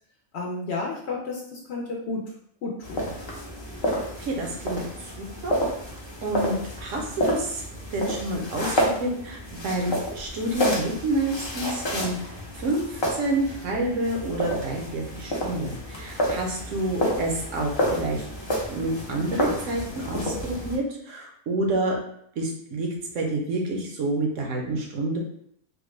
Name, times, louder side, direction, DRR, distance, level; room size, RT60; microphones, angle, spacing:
voice 1, 0.3-2.2 2.6-3.1, left 3 dB, 65° left, -2 dB, 0.7 m, -32 dB
sound 1, 2.8-20.8, equal, 40° left, 0.4 m, -30 dB
voice 2, 4.2-4.8 5.2-5.6 6.2-7.6 7.9-12.3 12.6-18.3 18.7-22.0 22.4-22.9 23.1-25.2, right 2 dB, 70° right, 0 dB, 1.0 m, -28 dB
3.6 x 2.1 x 3.1 m, 0.68 s
omnidirectional pair, 1.4 m